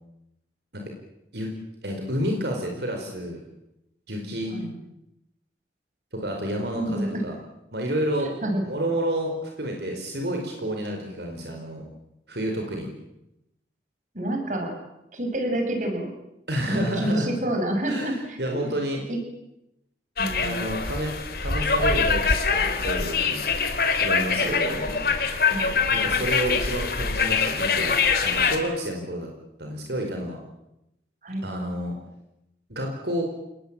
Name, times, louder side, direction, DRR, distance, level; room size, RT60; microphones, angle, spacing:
voice 1, 1.8-3.4 4.1-4.6 6.1-7.3 7.7-8.3 8.7-11.8 12.3-12.9 16.5-17.3 17.8-19.0 20.4-23.4 24.0-24.8 25.9-29.3 29.6-30.4 31.4-32.0 32.7-33.2, equal, 70° right, 2 dB, 4.8 m, -30 dB
voice 2, 6.7-7.2 8.2-8.6 14.1-14.7 15.1-16.1 16.7-18.7 19.1-19.2 20.2-20.6 24.4-25.1 25.5-25.7 31.2-31.5, right 1 dB, 45° right, 4 dB, 6.6 m, -28 dB
sound 1, 20.2-28.6, left 5 dB, 55° left, 3.5 m, -24 dB
28.0 x 20.5 x 8.9 m, 0.87 s
head